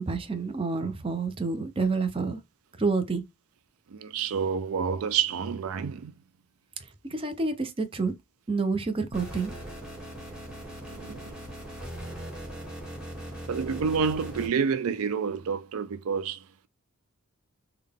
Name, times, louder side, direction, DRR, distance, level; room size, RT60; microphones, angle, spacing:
voice 1, 0.0-2.4 2.8-3.2 6.8-8.1 8.5-9.5, right 4 dB, 25° right, 0.5 m, -28 dB
voice 2, 3.9-6.1 10.9-11.3 13.5-16.7, right 6 dB, 80° right, 0.4 m, -29 dB
sound 1, 9.1-14.5, equal, 5° right, 1.6 m, -40 dB
3.7 x 2.2 x 3.4 m
head